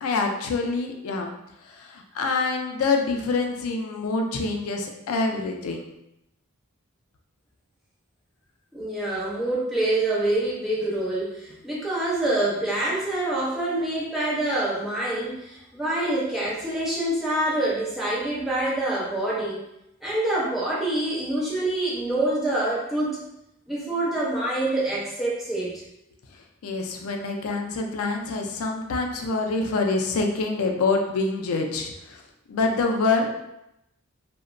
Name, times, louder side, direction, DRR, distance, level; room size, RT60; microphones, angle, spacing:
voice 1, 0.0-1.3 1.7-5.8 26.6-32.2 32.5-33.4, left 3 dB, 80° left, 3 dB, 0.4 m, -26 dB
voice 2, 8.7-19.6 20.0-23.2 23.7-25.8, right 1 dB, ahead, -7 dB, 0.5 m, -26 dB
2.8 x 2.1 x 2.5 m, 0.85 s
head